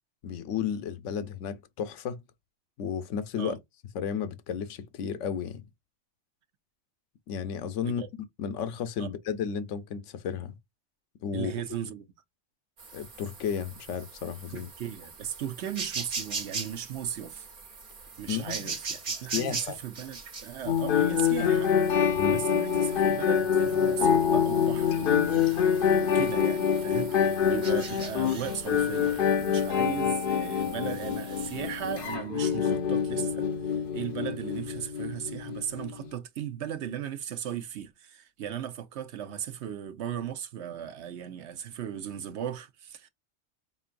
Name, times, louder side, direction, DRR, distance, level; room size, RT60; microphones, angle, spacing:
voice 1, 0.2-2.2 2.8-3.6 3.9-5.6 7.3-8.0 8.4-10.5 11.2-11.5 12.9-14.7 18.3-18.7 19.3-19.8 22.1-22.4, left 7 dB, 80° left, 1.0 m, -33 dB
voice 2, 11.3-12.1 14.5-17.5 18.2-21.8 22.3-27.2 27.5-33.5 33.9-43.1, right 9 dB, 70° right, 0.9 m, -37 dB
sound 1, 12.8-32.1, right 4 dB, 45° right, 1.1 m, -41 dB
sound 2, 20.7-36.1, left 8 dB, 55° left, 0.7 m, -26 dB
5.2 x 2.6 x 2.5 m
omnidirectional pair, 1.2 m